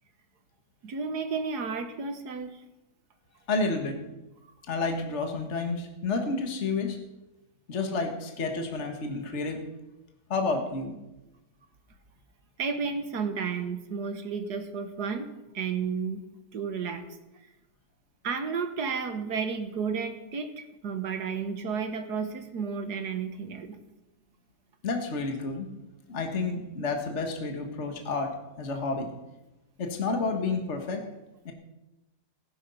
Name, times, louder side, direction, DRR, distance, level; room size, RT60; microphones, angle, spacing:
voice 1, 0.8-2.6 12.6-16.2 16.5-17.1 18.2-20.5 20.8-23.8, right 5 dB, 75° right, 8 dB, 1.9 m, -32 dB
voice 2, 3.5-4.0 4.7-7.0 7.7-9.6 10.3-11.0 24.8-25.7 26.1-29.1 29.8-31.0 31.5-31.6, left 3 dB, 45° left, 4 dB, 1.8 m, -30 dB
17.0 x 10.5 x 5.5 m, 0.99 s
omnidirectional pair, 1.7 m